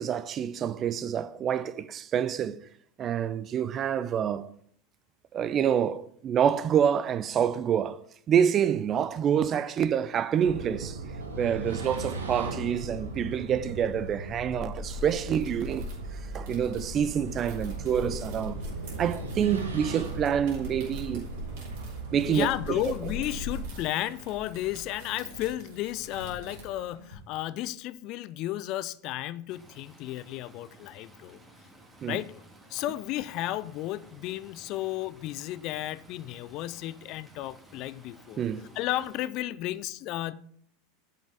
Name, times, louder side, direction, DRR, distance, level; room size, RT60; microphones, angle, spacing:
voice 1, 0.0-2.6 3.0-4.5 5.3-8.0 8.3-11.0 11.4-18.6 19.0-21.3 22.1-22.8 32.0-32.2 38.4-38.7, right 8 dB, 35° right, 0.5 m, -27 dB
sound 1, 10.4-23.7, right 1 dB, 80° right, 1.4 m, -37 dB
sound 2, 14.6-27.1, right 1 dB, 60° right, 3.0 m, -48 dB
voice 2, 22.3-31.4 32.1-32.4 32.7-38.4 38.7-40.3, left 14 dB, 50° left, 0.4 m, -33 dB
Stream, 29.5-39.3, right 1 dB, 10° right, 1.9 m, -55 dB
7.3 x 5.5 x 5.4 m
figure-of-eight pair, 85°, 0 cm